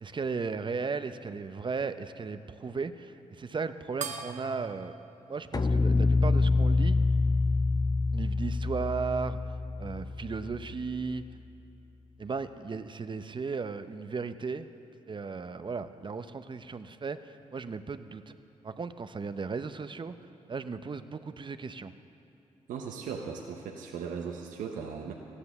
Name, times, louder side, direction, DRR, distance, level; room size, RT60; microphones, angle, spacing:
voice 1, 0.0-5.0 5.3-7.0 8.1-9.5 9.8-11.2 12.2-14.7 15.1-18.3 18.6-20.2 20.5-21.9, right 4 dB, 35° right, 11 dB, 0.7 m, -36 dB
sound 1, 4.0-6.8, right 6 dB, 65° right, 1.0 m, -43 dB
sound 2, 5.5-10.8, left 3 dB, 30° left, 0.6 m, -26 dB
voice 2, 22.7-25.1, right 6 dB, 85° right, 1 dB, 0.8 m, -37 dB
14.5 x 10.0 x 7.0 m, 2.8 s
supercardioid pair, 55°, 13 cm